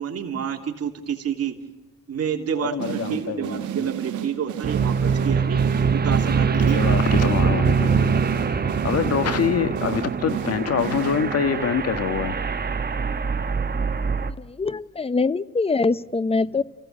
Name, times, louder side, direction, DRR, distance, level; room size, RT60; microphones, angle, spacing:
voice 1, 0.0-1.6 2.1-8.5, right 8 dB, 55° right, 3 dB, 3.1 m, -30 dB
voice 2, 2.6-3.6 6.3-12.4, left 7 dB, 55° left, 11 dB, 1.7 m, -26 dB
sound 1, 2.8-11.6, right 12 dB, 80° right, 1.8 m, -33 dB
sound 2, 4.6-14.3, right 5 dB, 30° right, 1.1 m, -23 dB
voice 3, 14.4-16.6, left 4 dB, 20° left, 17 dB, 0.8 m, -23 dB
30.0 x 15.5 x 8.5 m, 1.0 s
cardioid pair, 90°, 30 cm